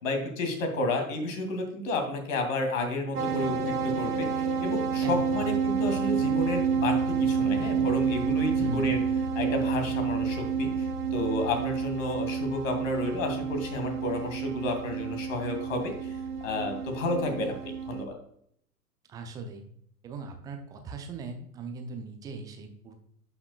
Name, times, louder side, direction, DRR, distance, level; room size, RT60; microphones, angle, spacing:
voice 1, 0.0-9.0 9.3-16.1 16.4-17.5 17.9-18.1, left 2 dB, 55° left, 5 dB, 2.3 m, -31 dB
sound 1, 3.1-18.0, right 6 dB, 75° right, 1.1 m, -29 dB
voice 2, 5.0-5.5 8.5-9.0 19.1-19.6 20.0-22.9, right 3 dB, 10° right, 5 dB, 0.4 m, -39 dB
11.0 x 5.8 x 2.2 m, 0.67 s
figure-of-eight pair, 100°, 46 cm